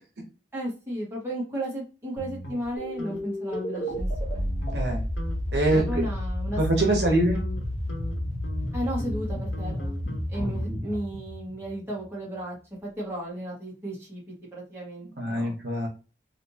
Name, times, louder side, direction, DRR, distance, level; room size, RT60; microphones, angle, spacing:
voice 1, 0.5-4.5 5.7-7.2 8.7-10.0 10.3-12.6 12.8-15.1 15.3-15.5, right 1 dB, 15° right, -5 dB, 1.6 m, -34 dB
sound 1, 2.2-3.2 3.5-3.9 4.3-4.9 5.2-5.4 5.7-6.1 6.5-10.9, left 1 dB, 90° left, 1.2 m, -40 dB
sound 2, 2.8-12.1, equal, 40° left, 1.1 m, -31 dB
voice 2, 4.7-5.0 5.5-6.0 6.6-7.4 10.4-10.9 15.2-15.9, right 1 dB, 70° right, -1 dB, 1.1 m, -25 dB
3.2 x 2.9 x 2.8 m, 0.32 s
head